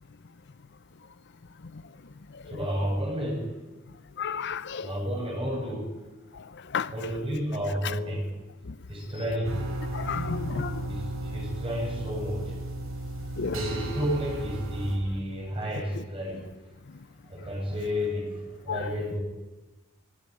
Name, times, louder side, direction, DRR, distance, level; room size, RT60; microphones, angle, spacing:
voice 1, 2.5-3.5 4.8-5.9 6.9-8.3 8.9-9.6 10.9-12.5 13.5-16.4 17.3-18.3 18.6-19.2, equal, 25° right, 0 dB, 7.5 m, -31 dB
voice 2, 4.2-4.9 6.7-6.9 7.8-8.0 9.9-10.8 13.4-13.6 15.9-16.0 18.7-18.9, left 6 dB, 55° left, 15 dB, 0.6 m, -32 dB
sound 1, 9.4-15.0, right 1 dB, 85° right, 6.4 m, -34 dB
21.0 x 17.5 x 9.3 m, 1.1 s
head